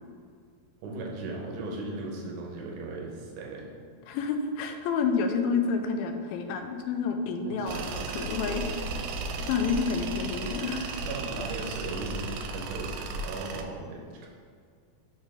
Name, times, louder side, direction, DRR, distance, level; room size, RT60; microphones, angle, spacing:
voice 1, 0.8-3.7 7.4-8.0 11.0-14.3, right 2 dB, 70° right, -2 dB, 2.2 m, -37 dB
voice 2, 4.1-9.0 9.4-11.0, left 5 dB, 85° left, 6 dB, 2.4 m, -29 dB
Tools, 7.7-13.6, right 3 dB, 85° right, 2.4 m, -35 dB
6.0 x 4.4 x 4.9 m, 2.1 s
omnidirectional pair, 4.2 m